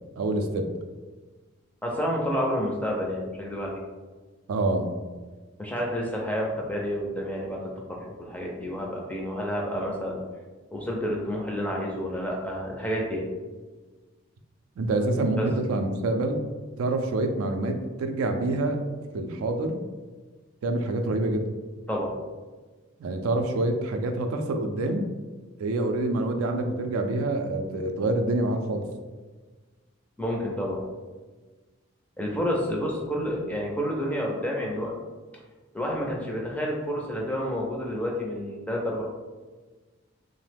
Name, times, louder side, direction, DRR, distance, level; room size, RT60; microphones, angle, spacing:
voice 1, 0.2-0.7 4.5-4.9 14.8-16.4 16.8-18.8 19.1-19.8 20.6-21.5 23.0-25.0 25.6-28.9, right 2 dB, 90° right, 6 dB, 0.4 m, -26 dB
voice 2, 1.8-3.8 5.6-10.2 10.7-13.3 15.4-15.5 21.9-22.1 30.2-30.8 32.2-34.9 35.7-39.0, equal, 5° left, -2 dB, 0.4 m, -29 dB
3.0 x 2.0 x 3.3 m, 1.3 s
head